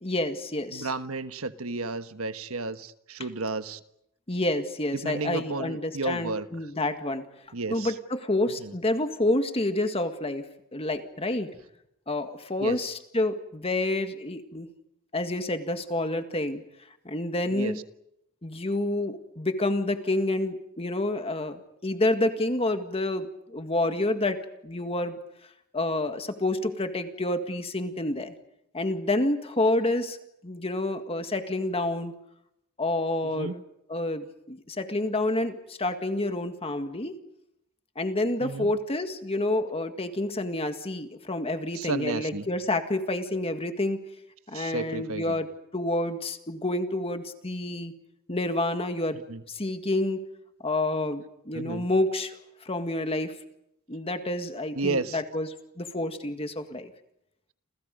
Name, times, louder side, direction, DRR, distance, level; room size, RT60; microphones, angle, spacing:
voice 1, 0.0-0.9 4.3-7.3 7.7-11.5 12.1-14.7 15.1-16.6 17.1-17.8 18.4-25.2 25.7-28.3 28.7-30.2 30.4-32.1 32.8-33.6 33.9-37.1 38.0-44.0 44.5-45.5 45.7-47.9 48.3-49.2 49.5-50.2 50.6-53.4 53.9-55.5 55.8-56.9, left 2 dB, 25° left, 7 dB, 1.8 m, -28 dB
voice 2, 0.7-3.8 5.0-6.5 7.5-7.9 8.6-8.7 12.6-12.9 17.5-17.7 33.2-33.6 38.4-38.7 41.7-42.5 44.5-45.4 49.3-49.4 51.5-51.9 54.7-55.2, right 3 dB, 70° right, 10 dB, 1.3 m, -32 dB
29.5 x 28.5 x 5.3 m, 0.79 s
head